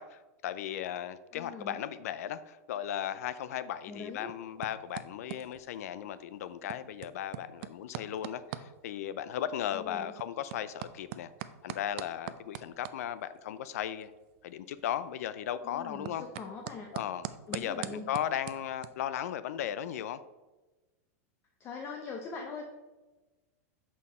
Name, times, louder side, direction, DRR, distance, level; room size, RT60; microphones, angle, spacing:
voice 1, 0.0-11.3 11.6-14.1 14.4-16.2 16.9-20.2, left 10 dB, 70° left, 14 dB, 0.5 m, -36 dB
voice 2, 1.3-1.8 3.9-4.3 9.7-10.1 15.6-16.9 17.5-18.1 21.6-22.7, left 4 dB, 30° left, 2 dB, 0.8 m, -42 dB
sound 1, 3.8-18.9, right 12 dB, 50° right, 0.4 m, -46 dB
7.2 x 4.3 x 4.3 m, 1.1 s
supercardioid pair, 140°, 8 cm